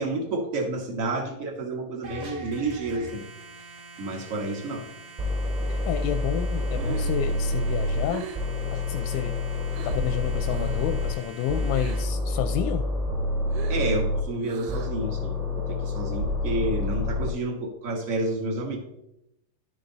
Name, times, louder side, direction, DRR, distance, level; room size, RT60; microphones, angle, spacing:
voice 1, 0.0-3.2 4.0-4.9 13.7-18.8, right 2 dB, 40° right, 1 dB, 1.2 m, -30 dB
sound 1, 2.0-12.0, right 3 dB, 55° right, 0.9 m, -45 dB
sound 2, 5.2-8.0 8.3-11.1 11.5-14.2 14.7-17.3, left 2 dB, 15° right, 1.8 m, -28 dB
voice 2, 5.7-8.2 8.7-9.3 9.8-12.9, left 10 dB, 90° left, 6 dB, 2.1 m, -30 dB
Breathing, 6.5-10.1 10.4-10.9 11.2-12.2 12.5-15.1, right 6 dB, 90° right, 2.4 m, -41 dB
11.5 x 5.4 x 4.0 m, 0.82 s
omnidirectional pair, 3.7 m